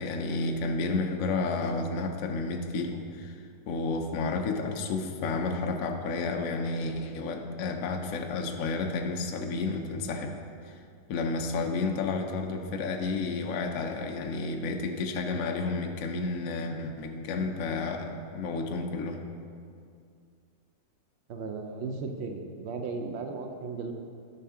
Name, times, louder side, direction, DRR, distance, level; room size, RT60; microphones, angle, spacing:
voice 1, 0.0-10.3 10.7-10.8 11.1-19.2, left 3 dB, 60° left, 3 dB, 0.9 m, -31 dB
voice 2, 21.3-23.9, right 4 dB, 80° right, 4 dB, 0.6 m, -36 dB
12.0 x 5.8 x 3.7 m, 2.3 s
omnidirectional pair, 1.9 m